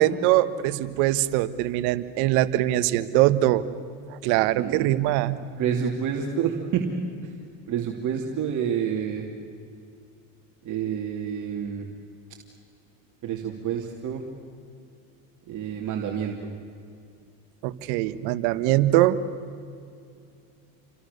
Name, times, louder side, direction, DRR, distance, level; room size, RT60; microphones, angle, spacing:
voice 1, 0.0-3.6 4.1-5.4 17.6-19.2, right 15 dB, 70° right, 12 dB, 1.5 m, -22 dB
voice 2, 4.5-4.9 5.6-6.9 7.2-7.3 7.7-9.2 10.6-11.9 13.2-14.2 15.5-16.5, right 8 dB, 45° right, 0 dB, 3.0 m, -28 dB
30.0 x 25.0 x 6.8 m, 2.4 s
supercardioid pair, 115°, 40 cm